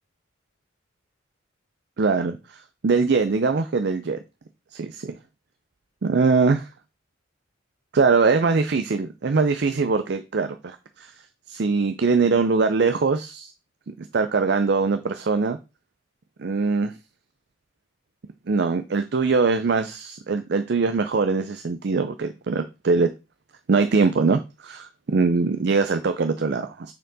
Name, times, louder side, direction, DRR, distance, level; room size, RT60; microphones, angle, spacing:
voice 1, 2.0-4.2 4.7-5.1 6.0-6.7 7.9-11.1 11.5-13.5 14.1-15.6 16.4-16.9 18.5-23.1 23.7-26.9, right 4 dB, 55° right, 0.5 m, -22 dB
6.4 x 4.4 x 4.0 m
head